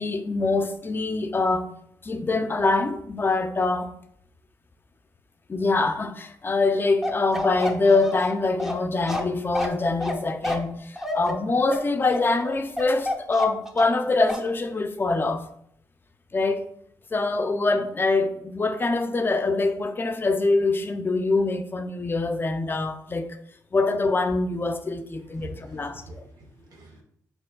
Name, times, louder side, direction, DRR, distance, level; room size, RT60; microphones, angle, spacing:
voice 1, 0.0-1.7 2.0-3.9 5.5-15.4 16.3-16.6 17.1-23.4 23.7-26.2, left 3 dB, 30° left, 0.4 m, -24 dB
Bark, 7.0-14.0 14.3-14.5, left 1 dB, 5° right, 0.6 m, -30 dB
voice 2, 25.3-27.0, right 2 dB, 70° right, 1.0 m, -45 dB
4.3 x 3.8 x 2.2 m
cardioid pair, 65°, 7 cm